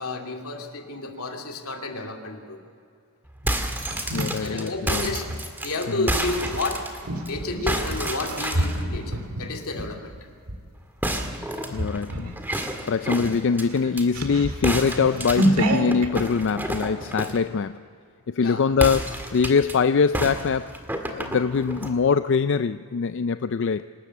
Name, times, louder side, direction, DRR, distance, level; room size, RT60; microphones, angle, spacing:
voice 1, 0.0-2.6 4.4-5.3 5.6-6.9 7.3-10.1 18.4-18.7, left 2 dB, 85° left, 2.5 m, -31 dB
sound 1, 3.3-7.3 7.7-8.8 11.0-14.0 14.6-17.5 18.7-19.7 20.1-21.9, right 1 dB, 10° right, 1.8 m, -30 dB
sound 2, 3.4-5.4 6.4-10.6 11.1-11.4 11.7-12.4 12.7-12.8 13.1-16.1, right 1 dB, 90° right, 2.0 m, -28 dB
voice 2, 4.1-5.0 6.0-6.1 11.7-12.3 12.9-17.9 18.3-20.7 21.1-23.8, left 5 dB, 55° left, 0.4 m, -23 dB
26.5 x 13.0 x 8.1 m
head